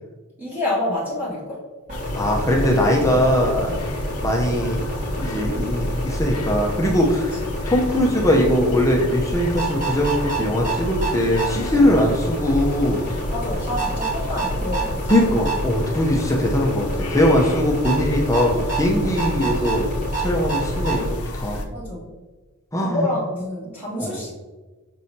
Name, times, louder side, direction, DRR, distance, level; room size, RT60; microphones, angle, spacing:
voice 1, 0.4-1.6 2.7-3.1 3.6-3.9 11.8-12.0 13.3-15.1 19.0-19.2 21.7-22.1 22.8-24.3, left 1 dB, 10° right, -9 dB, 1.9 m, -28 dB
sound 1, 1.9-21.6, left 1 dB, 85° left, 0.8 m, -32 dB
sound 2, 1.9-21.1, right 1 dB, 35° right, 1.8 m, -28 dB
voice 2, 2.1-3.7 4.2-4.9 5.2-7.4 7.7-13.1 15.1-19.9 20.2-21.6 22.7-23.1 24.0-24.1, left 1 dB, 15° left, -1 dB, 0.7 m, -20 dB
6.2 x 6.2 x 2.8 m, 1.2 s
head